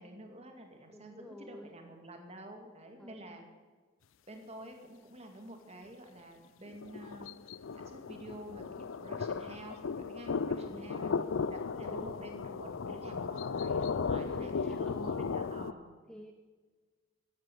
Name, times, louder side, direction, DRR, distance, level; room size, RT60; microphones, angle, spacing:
voice 1, 0.0-3.4 4.3-11.1 11.5-16.0, right 1 dB, 30° right, 4 dB, 2.3 m, -49 dB
voice 2, 0.9-1.8 3.0-3.4 10.5-11.6 11.8-12.4 14.1-15.3 16.1-16.3, equal, 5° left, 6 dB, 0.7 m, -50 dB
sound 1, 6.7-15.7, left 5 dB, 70° left, 0.5 m, -36 dB
13.0 x 11.0 x 7.8 m, 1.4 s
head